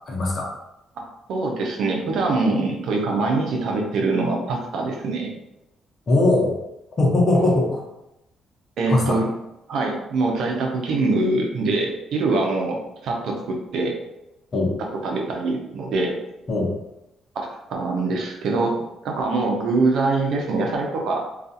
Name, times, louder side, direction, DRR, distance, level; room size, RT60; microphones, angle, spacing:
voice 1, 0.1-0.5 6.1-6.5 7.0-7.8 8.9-9.2 14.5-14.7 16.5-16.7, left 2 dB, 45° left, -2 dB, 0.8 m, -20 dB
voice 2, 1.3-5.3 7.4-7.6 8.8-9.3 9.7-12.8 13.0-14.0 15.0-16.2 17.3-18.7 19.0-21.2, right 3 dB, 75° right, 1 dB, 0.6 m, -23 dB
2.4 x 2.3 x 2.7 m, 0.88 s
cardioid pair, 90°, 0 cm